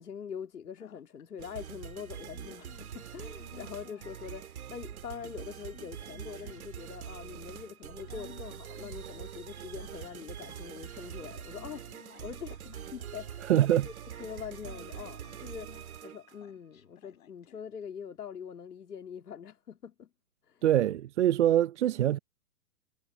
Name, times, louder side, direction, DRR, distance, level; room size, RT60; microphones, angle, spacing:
voice 1, 0.0-13.5 13.8-13.9 14.2-20.1 20.4-20.6, left 7 dB, 80° left, 2.9 m, -44 dB
sound 1, 0.8-1.2 2.3-4.2 5.2-6.8 8.1-10.9 11.5-13.6 14.6-17.8, left 9 dB, 60° left, 4.0 m, -57 dB
sound 2, 1.4-16.4, right 9 dB, 65° right, 2.8 m, -44 dB
voice 2, 13.5-13.9 20.6-22.2, right 12 dB, 50° right, 0.8 m, -24 dB
hypercardioid pair, 140°, 47 cm